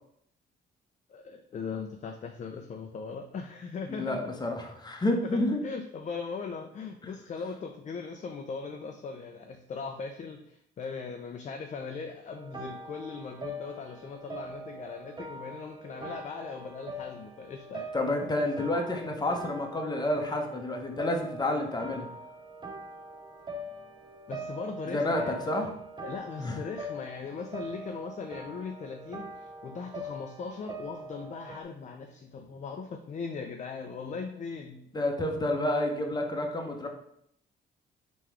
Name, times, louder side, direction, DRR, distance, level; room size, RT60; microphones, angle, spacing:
voice 1, 1.1-4.2 5.3-17.9 24.3-25.5 26.0-34.8, left 5 dB, 35° left, 4 dB, 0.4 m, -39 dB
voice 2, 3.9-5.6 17.9-22.1 24.9-25.7 26.4-26.6 34.9-36.9, left 1 dB, 20° left, 3 dB, 0.9 m, -29 dB
sound 1, 12.3-31.6, right 1 dB, 25° right, 0.7 m, -43 dB
3.7 x 3.0 x 4.5 m, 0.71 s
cardioid pair, 90°, 20 cm